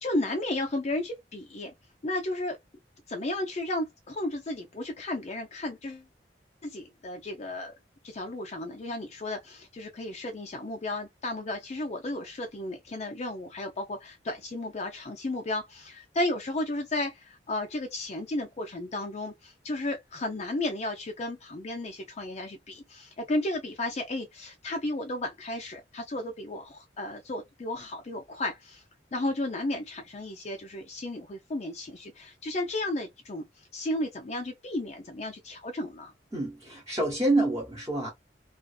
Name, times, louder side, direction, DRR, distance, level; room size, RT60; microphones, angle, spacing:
voice 1, 0.0-1.7 2.0-2.6 3.1-6.1 6.6-7.7 8.0-28.8 29.1-36.1, left 1 dB, 40° left, 0.5 m, -33 dB
voice 2, 36.3-38.1, right 2 dB, 20° right, 0.9 m, -27 dB
2.5 x 2.4 x 2.3 m
head